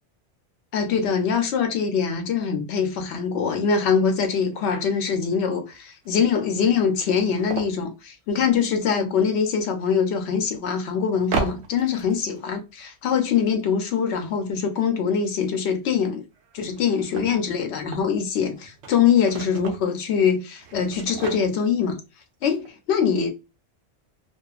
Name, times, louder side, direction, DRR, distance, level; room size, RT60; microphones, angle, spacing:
voice 1, 0.7-16.2 16.5-22.0 22.4-23.3, left 6 dB, 85° left, 0.9 m, -23 dB
sound 1, 3.5-3.6 3.9-4.0 4.5-4.6 5.7-5.8 6.0-6.1 6.7-7.8 9.9-10.0 11.2-12.4 16.3-18.2 18.6-19.9 20.5-21.9 22.2-22.3 22.5-22.7, right 5 dB, 85° right, 0.9 m, -35 dB
2.6 x 2.3 x 2.3 m
omnidirectional pair, 1.1 m